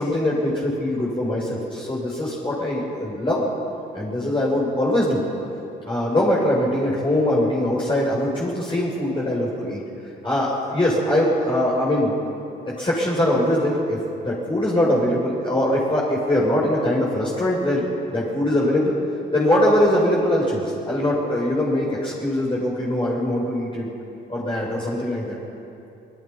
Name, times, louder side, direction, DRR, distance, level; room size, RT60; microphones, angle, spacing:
voice 1, 0.0-3.5 3.9-5.2 5.9-9.8 10.2-12.1 12.7-14.0 14.2-17.8 18.1-19.0 19.3-23.9 24.3-25.4, left 1 dB, 25° left, -6 dB, 6.8 m, -22 dB
29.5 x 19.5 x 5.7 m, 2.7 s
supercardioid pair, 65°, 21 cm